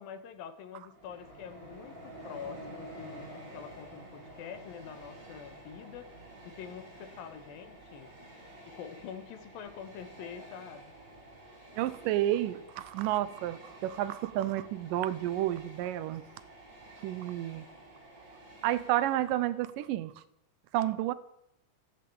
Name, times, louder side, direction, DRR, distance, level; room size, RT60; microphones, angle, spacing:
voice 1, 0.0-3.2 3.5-6.1 6.4-8.1 8.7-10.9, left 8 dB, 90° left, 9 dB, 3.1 m, -45 dB
Train, 0.9-19.8, right 1 dB, 30° right, 4.8 m, -50 dB
voice 2, 11.8-16.2 17.0-17.7 18.6-20.2 20.7-21.1, right 13 dB, 80° right, 15 dB, 2.2 m, -31 dB
14.0 x 9.4 x 8.6 m, 0.80 s
omnidirectional pair, 4.1 m